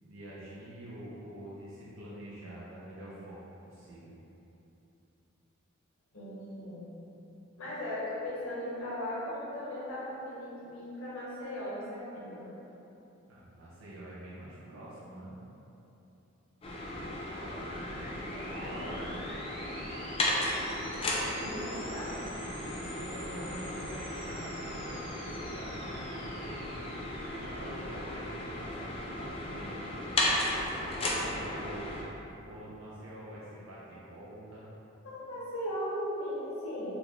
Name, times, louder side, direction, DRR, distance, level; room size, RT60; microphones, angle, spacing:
voice 1, 0.0-4.2 13.3-15.4 17.9-19.2 21.2-22.0 22.4-26.9 27.2-29.9 30.5-32.1 32.4-34.7, right 1 dB, 70° right, -8 dB, 0.6 m, -46 dB
voice 2, 6.1-6.9 7.6-12.5 18.5-19.1 21.4-22.2 35.0-36.9, left 1 dB, 85° left, -9 dB, 1.0 m, -38 dB
sound 1, 16.6-32.0, left 1 dB, 30° left, 0.4 m, -35 dB
sound 2, 17.1-28.8, equal, 25° right, 0.7 m, -49 dB
3.7 x 2.3 x 3.0 m, 3.0 s
head